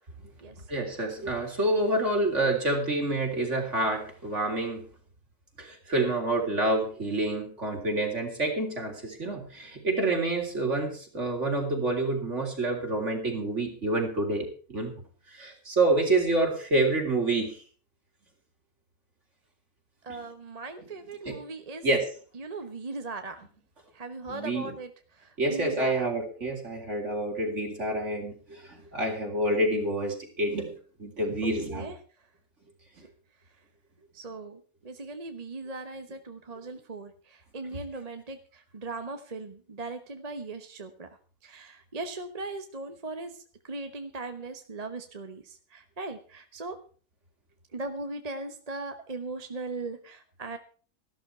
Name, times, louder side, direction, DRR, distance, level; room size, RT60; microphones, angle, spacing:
voice 1, 0.7-4.8 5.6-15.0 15.3-17.6 20.1-20.2 21.3-21.4 21.8-22.1 24.3-24.7 25.4-30.7 31.0-31.9 33.0-33.1, right 2 dB, 55° right, 2 dB, 4.0 m, -28 dB
voice 2, 20.0-21.9 22.3-23.4 23.9-26.1 31.4-32.0 34.1-41.1 41.4-43.3 43.6-46.8 47.7-50.6, right 3 dB, 30° right, 7 dB, 1.1 m, -39 dB
14.0 x 12.5 x 4.4 m, 0.40 s
omnidirectional pair, 1.4 m